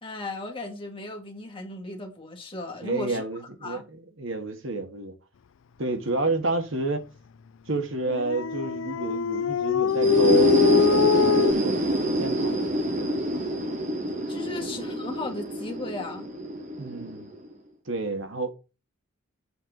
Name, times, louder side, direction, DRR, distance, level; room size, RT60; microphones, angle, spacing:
voice 1, 0.0-3.3 3.6-3.8 14.3-16.3, left 2 dB, 25° left, 2.1 m, -36 dB
voice 2, 2.8-5.1 5.8-7.1 7.7-11.8 12.2-12.7 14.6-14.7 16.8-17.3 17.9-18.5, right 3 dB, 70° right, 1.6 m, -30 dB
Dog, 8.1-11.5, left 6 dB, 70° left, 0.3 m, -23 dB
sound 1, 9.9-17.5, right 1 dB, 35° right, 1.3 m, -26 dB
7.9 x 4.5 x 6.0 m
head